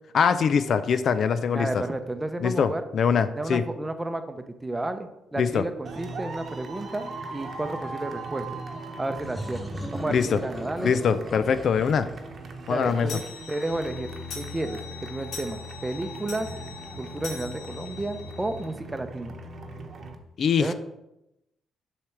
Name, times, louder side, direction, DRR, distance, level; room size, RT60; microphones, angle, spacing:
voice 1, 0.1-1.7 2.4-3.6 5.4-5.6 10.1-10.4 10.8-12.1 12.7-13.1 20.4-20.7, left 6 dB, 60° left, 12 dB, 0.4 m, -23 dB
voice 2, 1.5-2.8 3.4-8.6 9.0-10.9 12.7-13.2 13.5-16.5 17.0-19.3 20.6-20.7, right 2 dB, 15° right, 8 dB, 0.6 m, -32 dB
sound 1, 5.8-20.1, right 2 dB, 50° right, 0.9 m, -39 dB
sound 2, 9.2-13.7, equal, 10° left, 1.8 m, -39 dB
sound 3, 10.8-10.9 11.4-11.5 11.8-11.9 12.2-18.7, left 6 dB, 90° left, 1.3 m, -43 dB
7.0 x 3.3 x 5.8 m, 0.88 s
cardioid pair, 90°, 0 cm